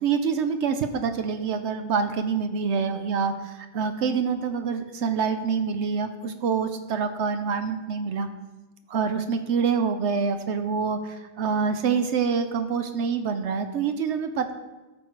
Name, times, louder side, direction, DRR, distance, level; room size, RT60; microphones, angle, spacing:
voice 1, 0.0-8.3 8.9-14.5, right 6 dB, 80° right, 8 dB, 1.0 m, -26 dB
13.5 x 6.3 x 4.7 m, 1.1 s
omnidirectional pair, 1.2 m